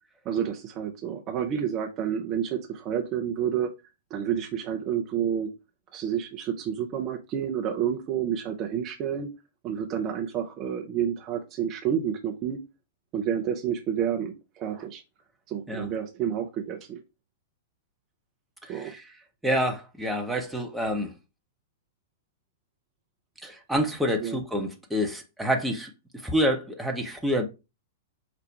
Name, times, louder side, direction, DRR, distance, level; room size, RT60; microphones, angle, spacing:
voice 1, 0.2-3.7 4.1-5.5 5.9-9.3 9.6-12.6 13.1-15.0 15.5-17.0 18.7-18.9 24.2-24.4, right 8 dB, 30° right, 0.7 m, -29 dB
voice 2, 18.6-19.1 19.4-21.1 23.4-27.4, equal, 5° right, 0.9 m, -28 dB
4.9 x 2.3 x 4.6 m
figure-of-eight pair, 100°, 0 cm